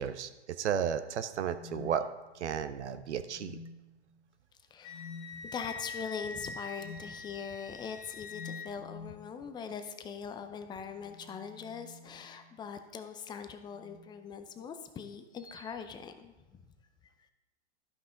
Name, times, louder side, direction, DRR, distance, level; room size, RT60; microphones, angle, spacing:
voice 1, 0.0-2.1 2.3-3.6, right 8 dB, 75° right, 11 dB, 0.7 m, -33 dB
sound 1, 1.4-2.7 3.3-4.1 4.9-5.4 6.8-7.1 8.3-9.3 10.8-12.7 13.7-14.2 15.4-15.7, left 4 dB, 90° left, 1.0 m, -49 dB
voice 2, 4.7-5.0 5.4-16.6, left 6 dB, 15° left, 9 dB, 0.5 m, -42 dB
Wind instrument woodwind instrument, 4.8-8.7, left 4 dB, 50° left, 1.0 m, -44 dB
12.5 x 5.5 x 3.8 m, 1.1 s
hypercardioid pair, 110°, 35 cm